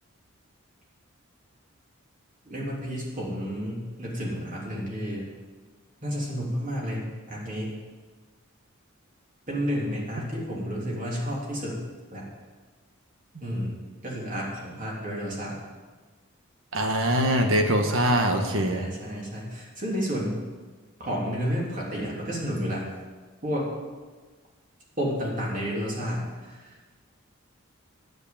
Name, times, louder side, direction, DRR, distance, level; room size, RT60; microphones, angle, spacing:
voice 1, 2.4-5.3 6.0-7.8 9.5-11.8 12.1-12.3 13.4-13.8 14.0-15.6 18.6-20.4 21.0-22.8 23.4-23.7 25.0-26.7, equal, 40° right, -3 dB, 3.3 m, -31 dB
voice 2, 16.7-18.8, right 1 dB, 70° right, 4 dB, 1.3 m, -23 dB
9.5 x 8.2 x 8.8 m, 1.4 s
head